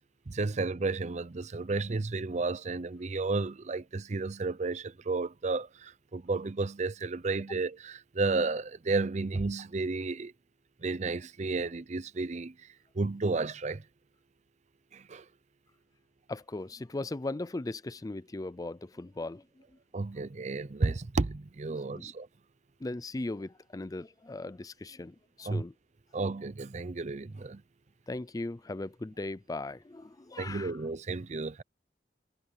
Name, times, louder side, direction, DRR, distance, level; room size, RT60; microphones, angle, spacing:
voice 1, 0.3-10.3 10.8-12.7 12.9-13.9 14.9-15.3 19.9-22.3 25.5-25.6 26.1-27.6 30.4-31.6, right 3 dB, 40° right, 0.6 m, -32 dB
voice 2, 16.3-19.6 21.7-22.1 22.8-25.7 28.1-30.8, left 2 dB, 20° left, 0.4 m, -38 dB
head